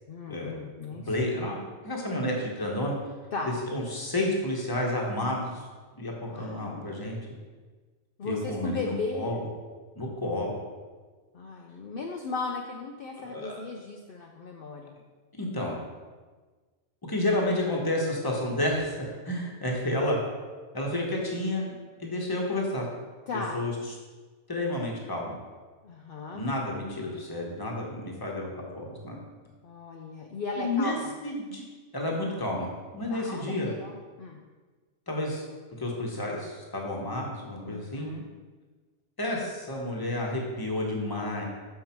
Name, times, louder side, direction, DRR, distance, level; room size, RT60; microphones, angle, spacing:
voice 1, 0.1-1.3 3.3-3.6 6.2-6.9 8.2-9.3 11.3-14.9 23.3-23.6 25.8-26.4 29.6-31.1 33.1-34.4 37.6-38.2, left 3 dB, 55° left, 1 dB, 0.7 m, -36 dB
voice 2, 1.0-1.6 1.8-2.9 3.7-5.6 5.9-7.2 8.2-9.4 9.9-10.6 13.1-13.6 15.3-15.8 17.1-20.2 20.7-22.9 23.3-23.7 24.5-25.3 26.3-29.2 30.6-31.0 31.2-31.6 31.9-33.7 35.1-35.4 35.8-38.1 39.2-41.4, left 1 dB, 20° left, -1 dB, 1.2 m, -30 dB
6.7 x 5.7 x 4.5 m, 1.4 s
omnidirectional pair, 1.2 m